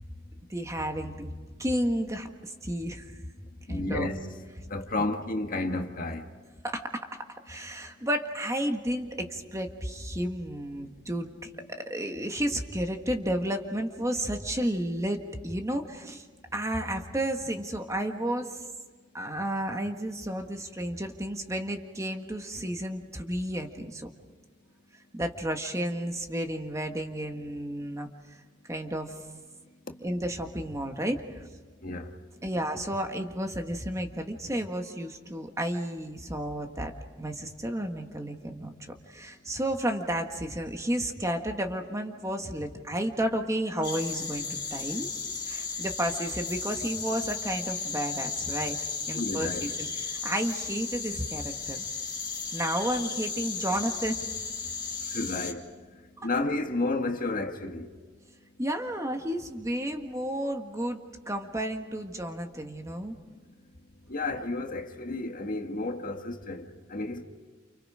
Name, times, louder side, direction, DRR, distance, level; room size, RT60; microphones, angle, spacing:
voice 1, 0.5-1.3 1.6-3.1 3.7-4.1 5.0-5.1 6.6-11.5 11.8-16.2 16.5-18.6 19.1-24.1 25.1-28.4 28.7-29.1 30.0-31.5 32.4-36.9 37.2-38.7 39.1-45.1 45.5-48.8 49.1-51.8 52.5-54.2 58.6-63.2, right 1 dB, 15° right, 1.7 m, -32 dB
voice 2, 3.7-4.2 4.7-6.2 31.8-32.1 49.1-49.7 55.1-55.6 56.2-57.9 64.1-66.6 66.9-67.2, left 2 dB, 45° left, 1.7 m, -31 dB
sound 1, 43.8-55.5, left 5 dB, 25° left, 2.4 m, -35 dB
30.0 x 29.0 x 5.0 m
head